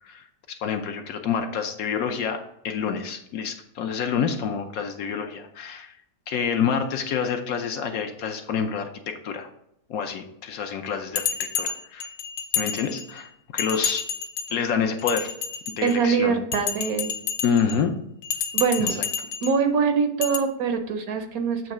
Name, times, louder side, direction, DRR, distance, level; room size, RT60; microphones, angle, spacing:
voice 1, 0.0-5.9 6.3-9.5 9.9-12.1 12.5-14.1 14.5-15.3 15.8-16.4 17.4-17.9 18.8-19.0, left 7 dB, 65° left, 6 dB, 1.0 m, -28 dB
Bell, 11.2-13.2 13.6-14.6 15.0-16.0 16.5-17.8 18.2-19.6 20.2-20.4, left 8 dB, 85° left, 1.3 m, -29 dB
voice 2, 15.8-17.1 18.5-19.0 19.4-21.6, right 6 dB, 65° right, 7 dB, 1.1 m, -23 dB
7.6 x 3.1 x 6.0 m, 0.76 s
omnidirectional pair, 1.8 m